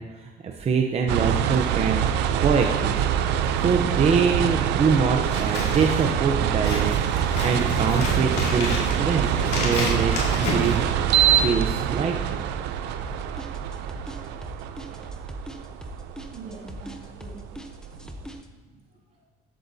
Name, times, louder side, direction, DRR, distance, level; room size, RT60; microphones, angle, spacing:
voice 1, 0.1-2.0 2.4-3.1 3.6-7.0 7.4-9.3 9.5-10.8 11.4-12.4, right 5 dB, 40° right, 3 dB, 0.7 m, -24 dB
sound 1, 1.1-18.2, right 9 dB, 90° right, 0.5 m, -25 dB
Scissors, 5.2-11.5, left 3 dB, 75° left, 2.3 m, -31 dB
sound 2, 13.0-18.5, left 1 dB, 5° left, 0.7 m, -40 dB
voice 2, 16.3-17.4 17.8-19.3, right 4 dB, 70° right, -2 dB, 2.2 m, -45 dB
12.0 x 7.7 x 2.7 m, 1.2 s
cardioid pair, 110°, 17 cm